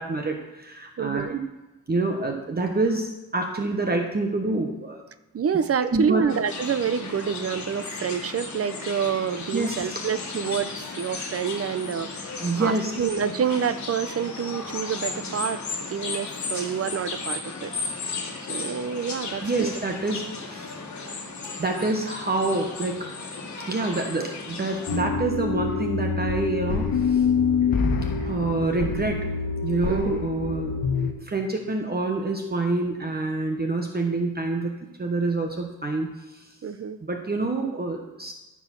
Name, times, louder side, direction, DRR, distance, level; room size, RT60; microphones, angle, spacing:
voice 1, 0.0-1.4 1.9-5.0 5.8-6.3 9.5-10.0 12.4-12.9 19.4-20.7 21.6-23.1 23.7-27.3 28.2-29.3 29.6-30.7 31.2-36.5 37.0-38.3, right 2 dB, 30° right, 3 dB, 1.0 m, -27 dB
voice 2, 1.0-1.4 5.3-17.7 18.5-19.7 29.9-30.2 36.6-37.0, right 7 dB, 45° right, 12 dB, 0.6 m, -28 dB
sound 1, 6.3-25.0, left 4 dB, 55° left, 1.7 m, -35 dB
sound 2, 24.9-31.1, left 5 dB, 80° left, 1.2 m, -25 dB
13.5 x 4.8 x 5.9 m, 1.1 s
wide cardioid pair, 145°, 34 cm